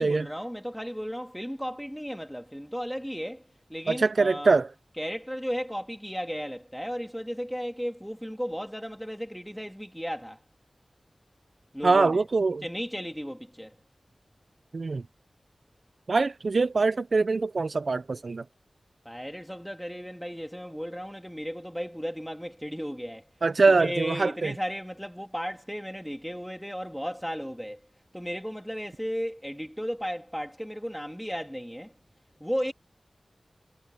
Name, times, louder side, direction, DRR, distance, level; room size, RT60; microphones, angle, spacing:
voice 1, 0.0-4.6 5.0-10.4 11.7-12.2 12.6-13.8 19.1-23.3 23.8-27.8 28.1-31.9 32.4-32.7, equal, ahead, 1.9 m, -35 dB
voice 2, 3.9-4.7 11.8-12.6 14.7-15.0 16.1-18.4 23.4-24.5, right 3 dB, 65° right, 0.5 m, -23 dB
wide cardioid pair, 90°, 0 cm